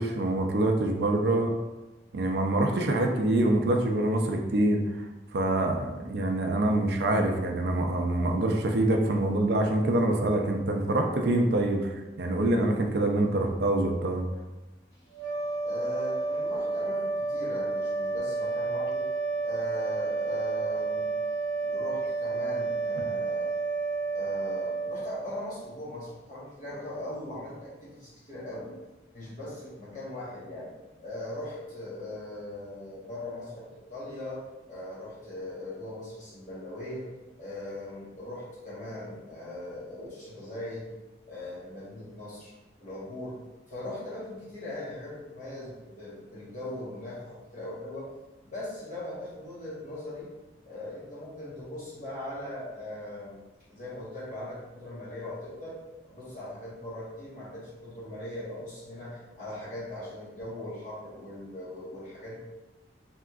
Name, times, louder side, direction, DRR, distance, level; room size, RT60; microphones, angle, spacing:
voice 1, 0.0-1.5 2.1-4.9 5.3-11.9 12.2-14.3 23.0-23.1, right 1 dB, 60° right, 3 dB, 0.4 m, -25 dB
sound 1, 15.1-25.7, right 3 dB, 70° left, 1.1 m, -30 dB
voice 2, 15.6-19.0 19.4-21.1 21.6-23.5 24.1-28.7 29.1-30.7 31.0-34.4 34.7-37.1 37.4-40.9 41.3-42.5 42.8-43.4 43.7-48.1 48.4-50.3 50.6-53.4 53.7-55.8 56.0-62.4, left 1 dB, 40° left, -9 dB, 1.1 m, -40 dB
3.4 x 2.8 x 2.3 m, 1.1 s
head